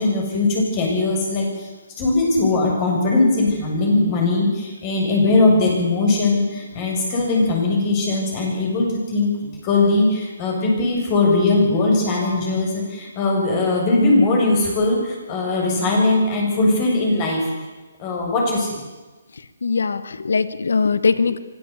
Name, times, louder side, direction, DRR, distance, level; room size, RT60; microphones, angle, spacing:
voice 1, 0.0-1.7 2.0-9.3 9.6-17.5 18.0-18.8, left 2 dB, 25° left, 0 dB, 7.2 m, -20 dB
voice 2, 19.6-21.4, left 4 dB, 80° left, 14 dB, 1.3 m, -20 dB
24.0 x 14.5 x 8.4 m, 1.2 s
hypercardioid pair, 155°, 0 cm